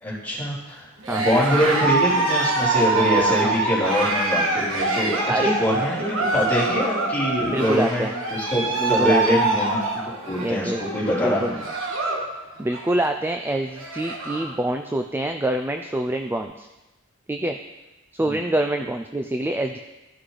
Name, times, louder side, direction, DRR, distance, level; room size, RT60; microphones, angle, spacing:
voice 1, 0.0-9.8 10.3-11.6 18.2-18.3, equal, 10° left, -9 dB, 3.5 m, -24 dB
Cheering, 1.0-12.3 12.6-13.0 13.4-13.5 13.7-14.5, right 3 dB, 80° right, 1.5 m, -25 dB
voice 2, 7.4-8.1 8.8-9.4 10.4-10.8 11.2-11.5 12.6-16.7 17.3-17.6 18.1-19.8, right 1 dB, 10° right, 5 dB, 0.3 m, -26 dB
14.5 x 6.1 x 3.2 m, 1.0 s
head